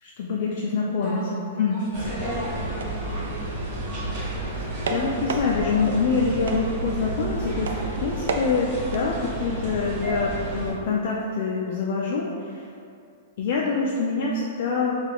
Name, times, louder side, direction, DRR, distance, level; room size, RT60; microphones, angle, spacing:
voice 1, 0.0-2.2 4.2-7.7 8.0-12.7 13.4-14.9, left 4 dB, 45° left, -3 dB, 0.3 m, -26 dB
voice 2, 0.8-3.7, equal, 20° left, -9 dB, 1.5 m, -37 dB
sound 1, 1.9-10.7, right 1 dB, 25° right, 0.7 m, -32 dB
sound 2, 2.5-9.0, right 3 dB, 85° right, 0.4 m, -33 dB
5.0 x 2.3 x 3.0 m, 2.4 s
supercardioid pair, 180°, 0 cm